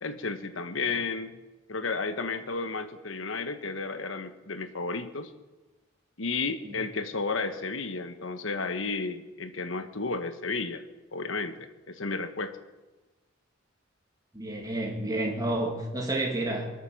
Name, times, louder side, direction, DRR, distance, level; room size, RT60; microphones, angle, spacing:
voice 1, 0.0-1.4 1.7-5.3 6.2-10.8 11.1-12.6, left 4 dB, 80° left, 9 dB, 1.3 m, -32 dB
voice 2, 14.3-16.7, right 1 dB, 20° right, -1 dB, 2.6 m, -30 dB
23.0 x 8.2 x 7.2 m, 1.2 s
head